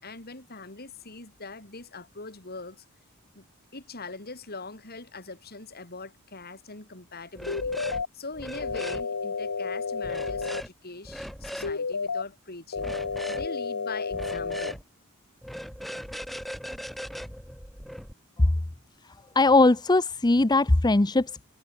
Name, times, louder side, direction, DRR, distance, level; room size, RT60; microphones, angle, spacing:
voice 1, 0.0-2.8 3.3-3.4 3.7-7.7 8.1-12.9 13.3-14.8, left 3 dB, 50° left, 4.9 m, -42 dB
sound 1, 7.4-8.0 8.3-9.0 10.0-10.7 11.1-11.7 12.8-13.5 14.1-14.8 15.4-18.1, equal, ahead, 1.8 m, -38 dB
sound 2, 7.5-8.1 8.6-10.6 11.6-12.2 12.7-14.7, left 5 dB, 90° left, 1.0 m, -31 dB
voice 2, 19.0-21.5, left 2 dB, 20° left, 0.7 m, -21 dB
head